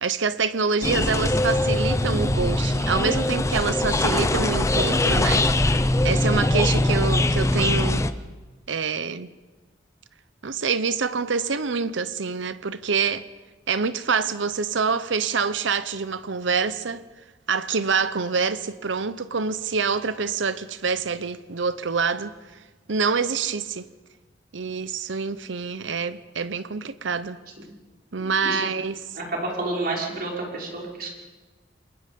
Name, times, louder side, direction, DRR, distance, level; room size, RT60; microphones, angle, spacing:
voice 1, 0.0-5.5 6.0-8.1 8.7-9.3 10.4-13.3 13.7-17.0 17.5-22.4 22.9-23.9 24.5-27.4 28.1-29.0, right 5 dB, 85° right, 0.8 m, -26 dB
sound 1, 0.8-8.1, left 1 dB, 15° left, 0.7 m, -22 dB
voice 2, 28.2-28.7 29.1-31.1, right 2 dB, 50° right, 5.8 m, -30 dB
28.5 x 22.5 x 5.3 m
head